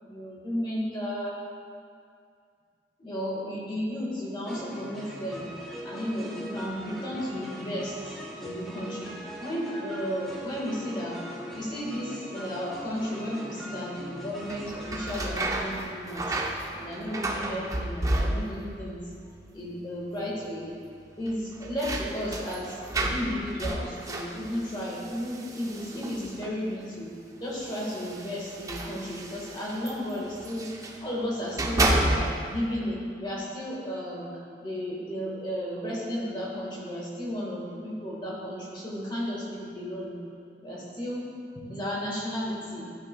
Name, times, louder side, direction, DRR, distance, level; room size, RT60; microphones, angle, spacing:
voice 1, 0.0-1.4 3.0-5.5 5.8-8.1 8.4-11.2 11.5-16.4 16.7-19.0 19.5-20.7 21.2-27.1 27.4-30.7 31.0-34.3 34.6-40.1 40.6-41.2 41.5-42.9, equal, 25° left, -5 dB, 1.5 m, -33 dB
sound 1, 4.5-15.8, equal, ahead, 0.9 m, -41 dB
sound 2, 14.4-18.8 19.1-19.7 20.0-20.1 21.2-26.6 27.5-31.0 31.4-32.6, right 1 dB, 20° right, 0.5 m, -31 dB
12.0 x 5.7 x 2.2 m, 2.3 s
head